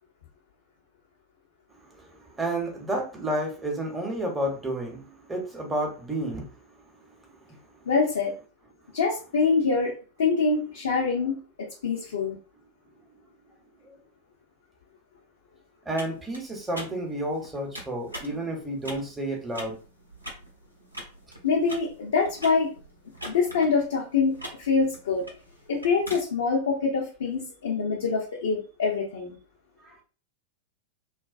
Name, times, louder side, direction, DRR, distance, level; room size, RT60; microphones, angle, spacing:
voice 1, 1.9-6.5 7.1-7.2 7.5-7.6 13.8-14.0 15.9-19.8 29.8-29.9, right 1 dB, 10° right, 0 dB, 0.9 m, -31 dB
voice 2, 7.9-8.3 8.9-11.4 11.8-12.4 21.4-22.7 23.3-25.3 25.7-29.3, left 4 dB, 65° left, -2 dB, 0.6 m, -25 dB
sound 1, 15.9-26.2, equal, 85° right, 0.7 m, -43 dB
2.3 x 2.2 x 2.4 m, 0.36 s
figure-of-eight pair, 90°, 0 cm